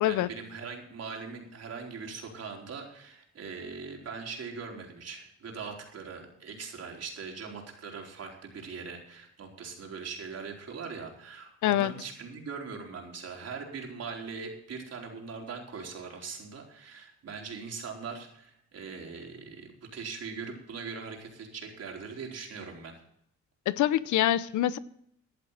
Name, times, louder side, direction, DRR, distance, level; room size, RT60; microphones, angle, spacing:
voice 1, 0.0-22.9, right 5 dB, 55° right, 4.5 m, -41 dB
voice 2, 11.6-11.9 23.7-24.8, left 13 dB, 75° left, 0.7 m, -25 dB
15.0 x 11.0 x 4.1 m
cardioid pair, 90°, 30 cm